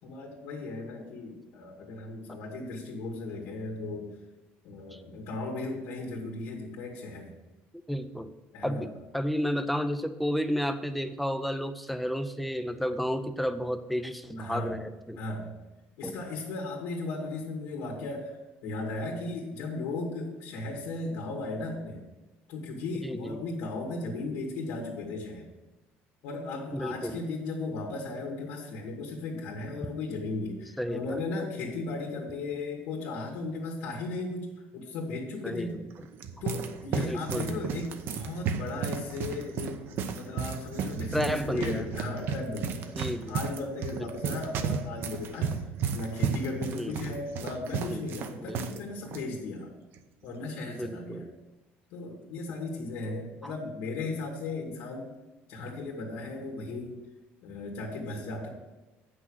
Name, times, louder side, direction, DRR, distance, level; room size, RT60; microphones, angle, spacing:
voice 1, 0.0-4.1 4.6-7.3 8.5-8.9 14.4-14.8 15.2-15.5 16.0-22.0 22.5-25.4 26.2-34.5 34.7-35.8 36.4-39.8 40.0-45.5 45.9-49.7 50.2-51.3 51.9-55.1 55.5-57.0 57.4-58.5, left 3 dB, 85° left, -1 dB, 1.8 m, -36 dB
voice 2, 7.9-8.3 8.6-15.2 16.0-16.2 23.0-23.4 26.7-27.2 30.8-31.2 35.4-35.8 36.9-37.5 41.1-41.9 43.0-43.4 43.9-44.4 46.7-47.1 47.9-48.0 48.4-48.8 50.7-51.3 52.5-52.6 53.4-53.5, equal, ahead, 10 dB, 0.5 m, -32 dB
sound 1, 35.9-48.8 49.1-49.2 49.9-50.2, right 6 dB, 50° right, 0.7 m, -34 dB
8.6 x 6.1 x 6.3 m, 1.1 s
cardioid pair, 160°, 5 cm